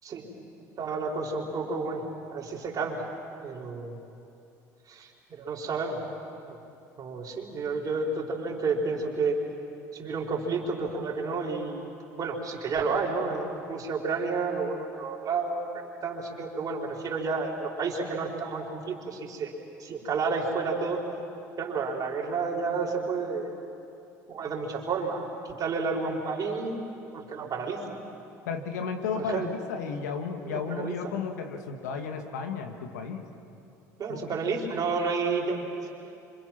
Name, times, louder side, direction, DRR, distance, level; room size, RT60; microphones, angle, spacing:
voice 1, 0.8-2.0 2.3-3.1 3.4-4.0 4.9-6.0 6.5-6.6 7.0-9.4 9.9-11.9 12.2-19.5 19.8-21.0 21.6-23.5 24.3-26.8 27.1-27.8 29.2-29.5 30.4-31.0 34.0-35.6, right 4 dB, 45° right, -1 dB, 5.0 m, -31 dB
voice 2, 28.5-33.2 34.1-34.2, left 6 dB, 85° left, 5 dB, 2.0 m, -33 dB
26.5 x 26.5 x 6.2 m, 2.7 s
hypercardioid pair, 70°, 9 cm